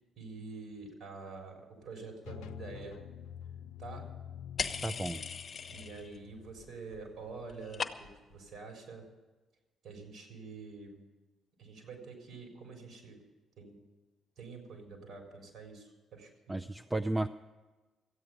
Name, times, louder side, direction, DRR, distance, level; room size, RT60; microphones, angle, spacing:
voice 1, 0.0-3.0 3.8-4.1 5.0-5.2 5.7-9.1 9.8-11.0 11.6-13.2 13.6-13.9 14.4-16.6, right 4 dB, 65° right, 1 dB, 3.9 m, -47 dB
sound 1, 2.2-7.9, left 10 dB, 75° left, 0.4 m, -48 dB
sound 2, 4.6-6.2 6.5-7.0 7.3-8.3, left 6 dB, 45° left, 0.9 m, -39 dB
voice 2, 4.8-5.2 16.5-17.3, right 2 dB, 15° right, 9 dB, 0.5 m, -33 dB
14.5 x 8.8 x 9.2 m, 1.2 s
hypercardioid pair, 45°, 0 cm